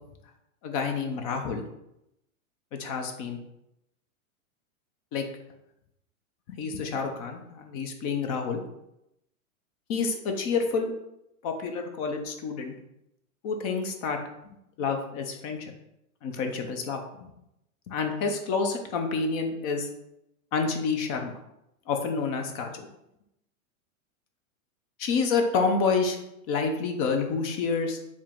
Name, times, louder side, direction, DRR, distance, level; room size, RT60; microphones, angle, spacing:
voice 1, 0.6-1.6 2.7-3.4 5.1-5.3 6.5-8.6 9.9-10.9 11.4-12.7 13.4-14.2 14.8-15.7 16.2-17.3 17.9-19.9 20.5-21.4 21.9-22.9 25.0-26.2 26.5-28.0, left 4 dB, 30° left, 4 dB, 0.4 m, -28 dB
4.7 x 2.8 x 3.5 m, 0.84 s
supercardioid pair, 145°, 42 cm